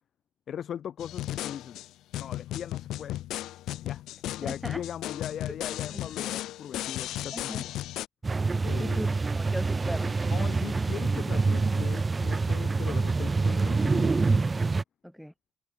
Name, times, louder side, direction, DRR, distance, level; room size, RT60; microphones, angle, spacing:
voice 1, 0.5-1.8 2.2-3.2 3.8-4.0 4.4-7.9 8.6-9.1 10.0-14.5, left 9 dB, 60° left, 5.8 m, -39 dB
sound 1, 1.0-8.1, left 14 dB, 85° left, 2.7 m, -35 dB
voice 2, 4.4-4.8 5.9-6.0 7.3-7.6 8.8-10.1 15.0-15.3, equal, ahead, 5.1 m, -38 dB
sound 2, 8.2-14.8, right 3 dB, 25° right, 0.5 m, -26 dB
cardioid pair, 90°, 0 cm